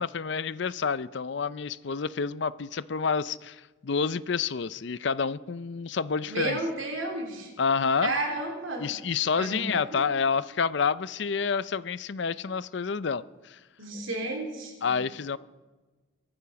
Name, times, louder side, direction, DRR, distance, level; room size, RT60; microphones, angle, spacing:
voice 1, 0.0-6.6 7.6-8.1 8.8-13.6 14.8-15.4, left 5 dB, 60° left, 17 dB, 0.5 m, -28 dB
voice 2, 6.3-7.5 8.0-8.9 9.4-10.1 13.8-14.9, right 2 dB, 80° right, 2 dB, 3.8 m, -32 dB
23.0 x 9.0 x 5.8 m, 1.2 s
head